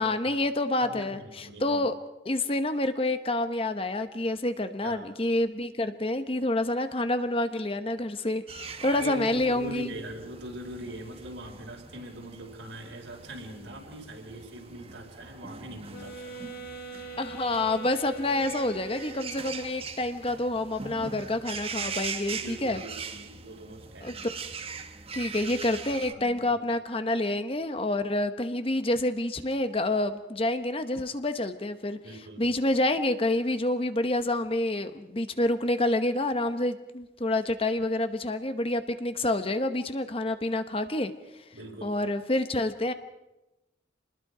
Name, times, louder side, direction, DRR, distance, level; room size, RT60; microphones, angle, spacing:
voice 1, 0.0-1.9 2.2-9.9 17.2-22.8 24.0-24.1 25.1-32.0 32.4-41.1 41.8-42.9, left 1 dB, 30° left, 9 dB, 1.0 m, -28 dB
voice 2, 0.8-1.8 4.8-5.1 8.9-16.6 22.3-24.2 26.1-26.8 32.0-32.5 41.5-42.0, right 1 dB, 85° right, 1 dB, 4.9 m, -42 dB
sound 1, 8.5-26.1, right 5 dB, 30° right, 1.1 m, -41 dB
sound 2, 15.9-19.8, right 4 dB, 60° left, 7.2 m, -42 dB
27.5 x 20.5 x 5.0 m, 0.98 s
head